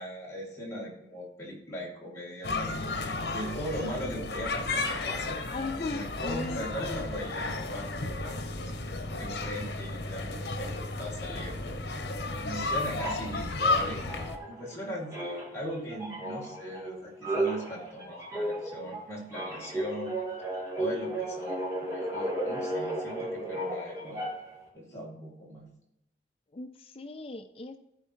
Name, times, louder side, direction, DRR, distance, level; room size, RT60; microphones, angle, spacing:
voice 1, 0.0-5.4 5.9-12.1 12.4-14.1 14.5-20.1 20.8-24.3 24.7-25.7, equal, 15° left, -4 dB, 2.4 m, -39 dB
sound 1, 2.4-14.4, left 3 dB, 70° left, 1.0 m, -33 dB
voice 2, 5.5-6.6 26.5-27.8, left 3 dB, 30° left, 8 dB, 0.4 m, -37 dB
sound 2, 13.0-14.8 15.1-24.6, right 1 dB, 20° right, 2.1 m, -34 dB
13.5 x 4.6 x 4.5 m, 0.85 s
head